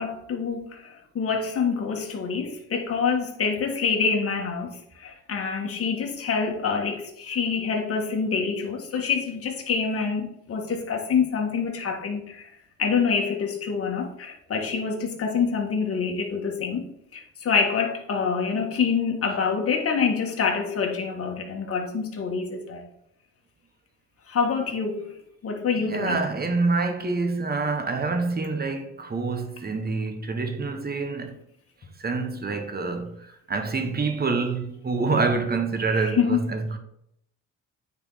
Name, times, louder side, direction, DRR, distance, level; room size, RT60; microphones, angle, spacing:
voice 1, 0.0-12.5 12.8-22.9 24.3-25.1 25.4-26.3 35.9-36.5, left 5 dB, 50° left, 1.9 m, -26 dB
voice 2, 25.8-31.4 32.0-36.8, right 4 dB, 30° right, 1.4 m, -27 dB
9.0 x 4.5 x 4.1 m
cardioid pair, 90°, 30 cm